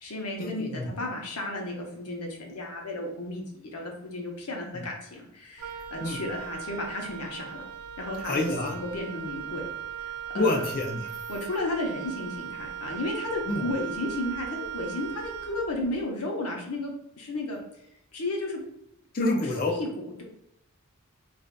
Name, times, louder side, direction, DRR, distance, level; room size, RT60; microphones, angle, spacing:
voice 1, 0.0-7.6 8.0-9.7 10.0-10.6 11.3-17.6 18.1-18.6 19.7-20.2, left 2 dB, 90° left, 0 dB, 0.8 m, -33 dB
Wind instrument woodwind instrument, 5.6-16.0, right 9 dB, 80° right, 0.3 m, -38 dB
voice 2, 8.3-8.7 10.3-11.1 13.5-13.6 19.1-19.7, left 2 dB, 40° left, 0 dB, 0.5 m, -27 dB
3.7 x 2.5 x 2.2 m, 0.79 s
head